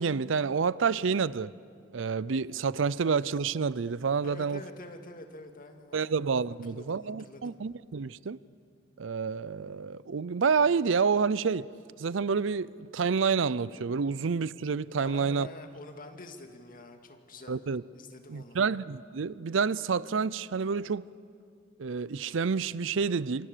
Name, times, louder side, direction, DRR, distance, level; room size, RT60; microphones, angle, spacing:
voice 1, 0.0-1.5 1.9-4.6 5.9-8.4 9.0-11.7 12.0-15.5 17.5-17.8 18.3-21.0 21.8-23.5, right 5 dB, 70° right, 0.5 m, -28 dB
voice 2, 4.2-6.2 6.6-7.6 15.0-17.6 17.9-18.6, left 2 dB, 45° left, 2.2 m, -47 dB
27.5 x 25.5 x 6.8 m
head